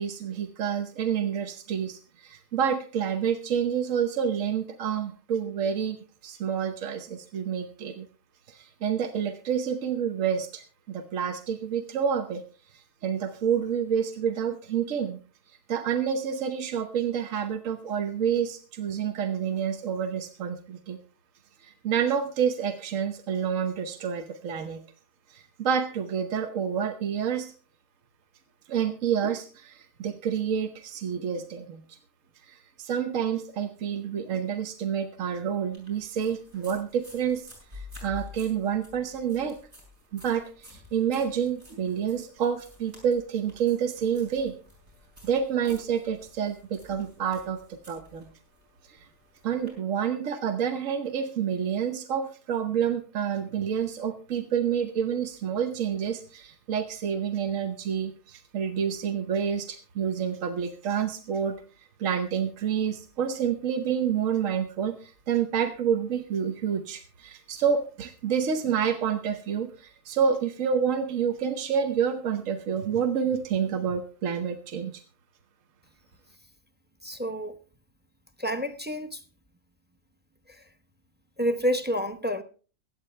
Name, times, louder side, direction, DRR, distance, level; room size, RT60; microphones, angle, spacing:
voice 1, 0.0-6.0 6.2-8.1 8.5-12.4 12.7-15.2 15.7-21.0 21.6-24.8 25.3-27.5 28.7-31.8 32.5-37.5 37.7-39.6 40.1-44.5 45.2-47.6 47.9-48.2 49.4-74.9, right 7 dB, 75° right, 1.3 m, -28 dB
sound 1, 35.7-49.7, left 3 dB, 55° right, 6.6 m, -50 dB
voice 2, 77.0-77.6 78.4-79.2 80.5-80.7 81.4-82.4, equal, 10° right, 0.7 m, -29 dB
23.0 x 8.6 x 3.3 m
omnidirectional pair, 1.4 m